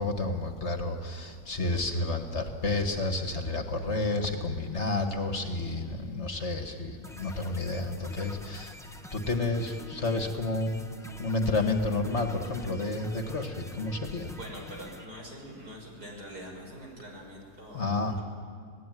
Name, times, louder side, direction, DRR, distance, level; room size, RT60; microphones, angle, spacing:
voice 1, 0.0-8.7 9.1-10.8 11.2-14.3 17.7-18.2, left 2 dB, 45° left, 4 dB, 2.1 m, -30 dB
sound 1, 7.0-15.0, left 1 dB, ahead, 1.1 m, -47 dB
voice 2, 14.2-18.2, equal, 80° right, 0 dB, 6.5 m, -44 dB
27.5 x 19.0 x 9.3 m, 2.3 s
omnidirectional pair, 1.7 m